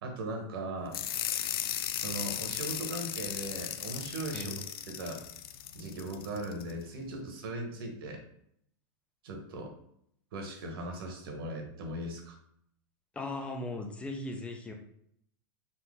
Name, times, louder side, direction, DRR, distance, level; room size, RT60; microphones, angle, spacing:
voice 1, 0.0-1.0 2.0-5.2 5.7-8.2 9.2-9.7 10.3-12.4, right 1 dB, 75° right, 3 dB, 1.3 m, -38 dB
sound 1, 0.9-6.7, left 10 dB, 85° left, 0.4 m, -36 dB
voice 2, 13.1-14.7, left 2 dB, 10° left, 4 dB, 0.5 m, -37 dB
4.4 x 2.9 x 3.6 m, 0.69 s
supercardioid pair, 145°, 12 cm